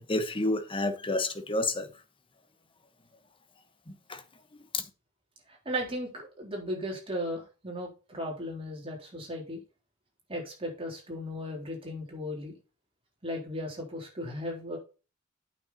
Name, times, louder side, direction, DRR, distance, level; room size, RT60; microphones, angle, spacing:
voice 1, 0.0-1.9 4.1-4.2 4.7-4.8, left 2 dB, 25° left, 1.1 m, -29 dB
voice 2, 5.5-9.6 10.3-12.6 13.2-14.8, equal, 25° right, 3.6 m, -36 dB
8.9 x 6.4 x 4.2 m
head